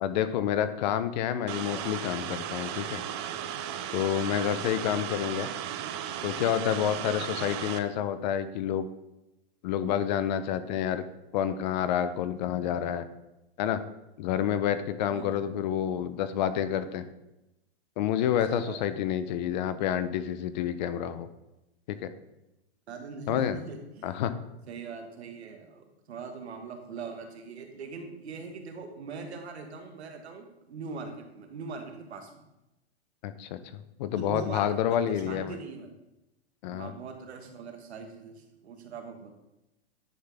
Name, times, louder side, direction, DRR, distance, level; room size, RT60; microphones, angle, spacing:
voice 1, 0.0-3.0 3.9-5.5 6.2-8.9 9.6-11.0 11.3-13.0 13.6-13.8 14.2-17.0 18.0-21.3 21.9-22.1 23.3-23.6 24.0-24.4 33.2-35.6 36.6-36.9, left 10 dB, 45° left, 12 dB, 0.6 m, -29 dB
sound 1, 1.5-7.8, right 10 dB, 25° right, 0.4 m, -35 dB
voice 2, 6.8-7.1 15.1-15.4 18.5-18.8 22.9-24.1 24.7-32.4 34.2-35.9 36.7-39.3, right 4 dB, 85° right, 5 dB, 1.6 m, -41 dB
10.0 x 5.6 x 3.5 m, 0.93 s
hypercardioid pair, 140°, 32 cm